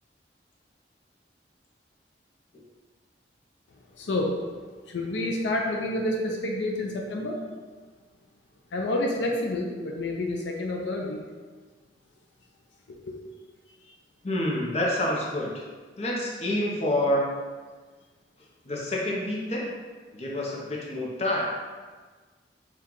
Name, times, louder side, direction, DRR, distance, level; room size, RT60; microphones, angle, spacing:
voice 1, 3.9-4.4 4.9-7.4 8.7-11.2 12.9-13.2 13.8-13.9, left 1 dB, 85° left, 0 dB, 0.5 m, -29 dB
voice 2, 14.2-15.5 16.0-17.2 18.6-19.7 20.1-21.4, left 1 dB, 35° left, -3 dB, 0.7 m, -27 dB
4.4 x 2.4 x 3.8 m, 1.4 s
head